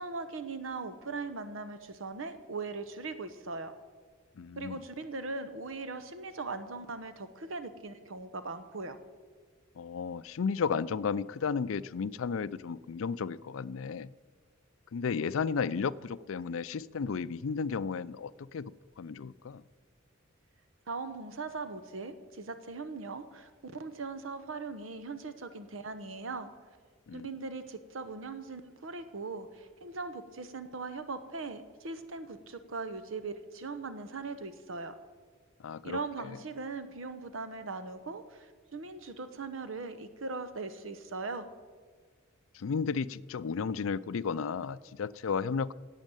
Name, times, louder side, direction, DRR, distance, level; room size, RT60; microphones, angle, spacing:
voice 1, 0.0-3.7 4.6-9.0 20.9-26.5 27.1-34.9 35.8-41.5, right 3 dB, 70° right, 11 dB, 0.9 m, -40 dB
voice 2, 4.4-4.8 9.8-14.1 14.9-19.6 27.1-27.3 35.6-36.4 42.5-45.7, left 5 dB, 80° left, 17 dB, 0.4 m, -33 dB
12.0 x 8.3 x 9.0 m, 1.5 s
head